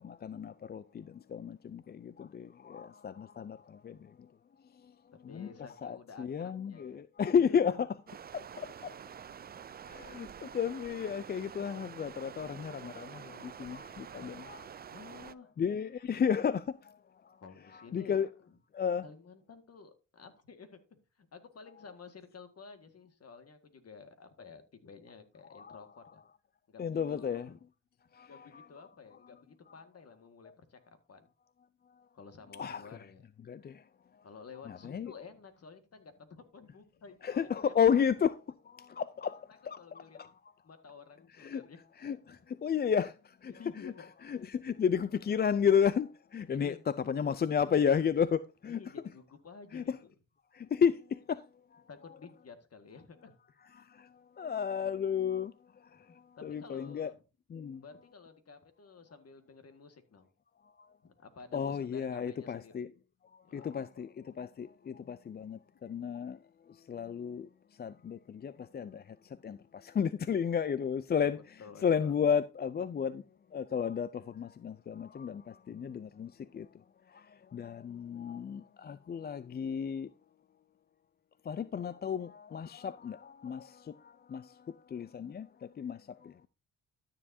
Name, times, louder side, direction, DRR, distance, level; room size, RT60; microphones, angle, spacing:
voice 1, 0.0-4.1 5.3-5.5 5.8-7.7 8.3-8.9 9.8-14.7 15.6-16.9 17.9-18.3 18.7-19.0 25.5-25.8 26.8-27.5 28.1-28.7 32.6-32.8 33.5-33.8 34.7-35.1 37.2-38.3 38.7-40.3 41.4-41.6 42.0-43.5 43.8-43.9 44.3-46.8 47.1-48.8 49.7-50.0 50.5-51.4 51.7-51.8 53.8-54.1 54.4-55.5 56.4-57.1 57.5-57.8 61.5-62.9 63.5-66.4 66.7-67.5 67.8-69.2 69.4-71.4 71.8-73.2 73.5-76.7 77.1-80.1 81.5-86.5, left 7 dB, 30° left, 0.4 m, -33 dB
voice 2, 5.3-7.0 7.5-7.9 14.9-15.5 17.4-18.6 19.0-20.8 21.2-26.2 26.7-27.6 28.3-31.3 32.1-33.2 34.2-37.7 39.8-40.2 40.6-41.8 42.4-42.5 43.5-44.1 44.4-44.5 46.5-46.8 48.6-50.1 51.9-53.3 56.1-57.2 57.8-60.3 61.0-62.8 63.5-63.7 63.9-64.1 71.2-72.2, left 5 dB, 45° left, 1.8 m, -52 dB
Stream, 8.1-15.3, right 8 dB, 30° right, 0.4 m, -48 dB
12.5 x 7.3 x 2.7 m
supercardioid pair, 65°, 34 cm